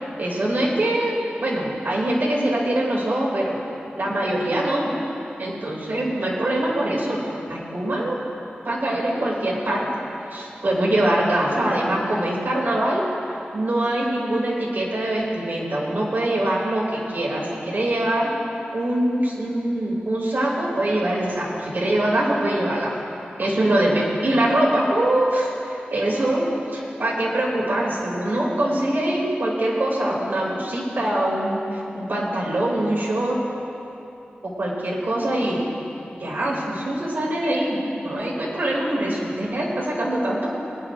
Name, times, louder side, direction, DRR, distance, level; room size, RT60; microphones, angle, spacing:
voice 1, 0.2-3.6 4.0-4.9 5.4-7.2 7.5-8.2 8.6-9.8 10.2-13.0 13.5-18.3 18.7-22.9 23.4-33.4 34.6-35.7 36.2-40.5, right 1 dB, 65° right, -4 dB, 2.5 m, -23 dB
21.0 x 10.0 x 2.5 m, 2.9 s
wide cardioid pair, 75°, 4 cm